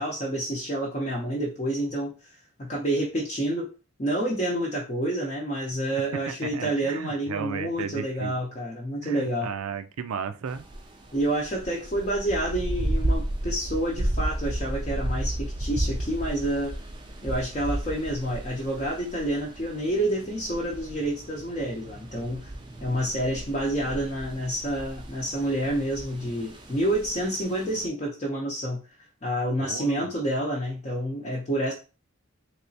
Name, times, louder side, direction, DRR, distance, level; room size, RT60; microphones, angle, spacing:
voice 1, 0.0-3.7 4.0-9.5 11.1-16.7 17.2-22.5 22.8-28.8 29.2-31.7, right 1 dB, 30° left, -3 dB, 0.6 m, -28 dB
voice 2, 6.3-8.4 9.0-10.6 29.6-30.1, right 6 dB, 85° right, 10 dB, 0.4 m, -34 dB
sound 1, 10.5-27.9, right 1 dB, 20° right, 0.4 m, -33 dB
3.3 x 2.9 x 2.7 m, 0.32 s
head